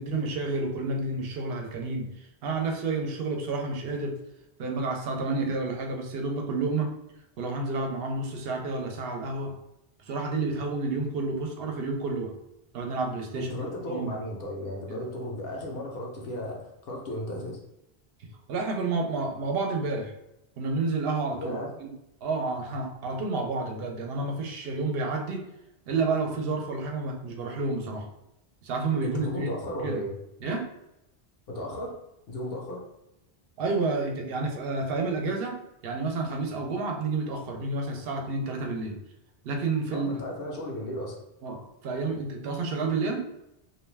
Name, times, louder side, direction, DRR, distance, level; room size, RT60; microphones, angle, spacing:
voice 1, 0.0-4.1 4.6-6.9 7.4-9.5 10.0-12.3 12.7-14.2 14.9-15.0 18.5-20.1 20.6-21.9 22.2-25.4 25.9-28.1 28.6-29.5 29.8-30.0 30.4-30.7 33.6-35.6 35.8-39.0 39.4-40.2 41.4-43.2, right 3 dB, 75° right, 2 dB, 0.8 m, -30 dB
voice 2, 13.3-17.6 21.4-21.7 29.0-30.1 31.5-31.9 32.3-32.8 39.9-41.2, left 1 dB, 70° left, -1 dB, 0.9 m, -35 dB
2.5 x 2.2 x 3.2 m, 0.86 s
omnidirectional pair, 1.0 m